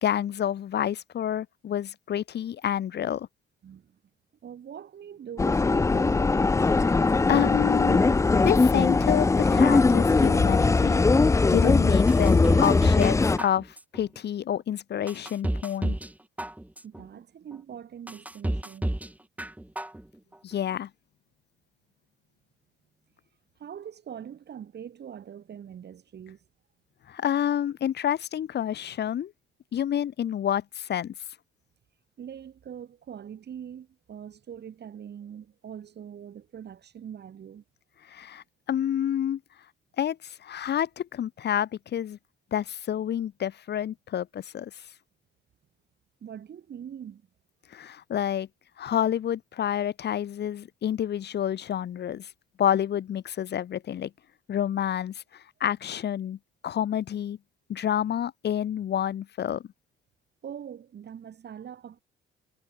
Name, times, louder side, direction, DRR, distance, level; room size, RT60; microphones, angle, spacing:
voice 1, 0.0-3.3 6.7-7.0 7.3-8.0 8.3-11.0 11.5-16.0 20.4-20.9 27.1-29.3 29.7-31.1 38.1-39.4 40.0-42.2 42.5-44.7 47.7-48.5 48.8-52.3 52.6-54.1 54.5-56.4 56.6-57.4 57.7-59.6, left 10 dB, 60° left, 1.1 m, -28 dB
voice 2, 3.6-4.0 4.4-6.6 16.8-18.9 23.6-26.4 32.2-37.6 46.2-47.2 60.4-62.0, right 8 dB, 60° right, 5.4 m, -43 dB
sound 1, 5.4-13.4, left 3 dB, 15° left, 0.4 m, -20 dB
sound 2, 12.1-13.1 13.4-14.0 14.5-14.6 15.1-16.1 16.4-17.0 17.5-17.6 18.1-19.1 19.4-20.0 20.3-20.4, right 1 dB, 5° right, 2.4 m, -30 dB
cardioid pair, 90°, 20 cm